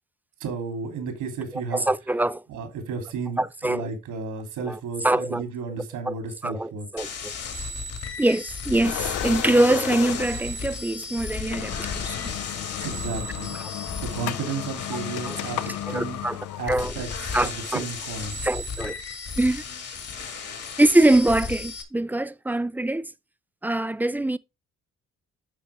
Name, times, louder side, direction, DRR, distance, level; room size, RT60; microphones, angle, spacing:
voice 1, 0.4-1.8 2.5-6.9 12.8-16.2 16.6-18.4, right 5 dB, 90° right, 3.1 m, -33 dB
voice 2, 1.7-2.4 3.4-3.9 4.7-5.4 6.1-6.2 6.4-7.3 8.2-12.3 15.2-15.4 15.9-16.4 16.7-17.0 17.3-17.8 18.4-18.9 19.4-19.6 20.8-23.1 23.6-24.4, right 1 dB, 5° right, 0.4 m, -23 dB
sound 1, 7.0-21.8, left 4 dB, 55° left, 2.3 m, -35 dB
sound 2, 8.8-10.5 11.0-11.1 11.4-17.6, left 12 dB, 75° left, 0.7 m, -34 dB
12.0 x 4.7 x 3.5 m
cardioid pair, 90°, 30 cm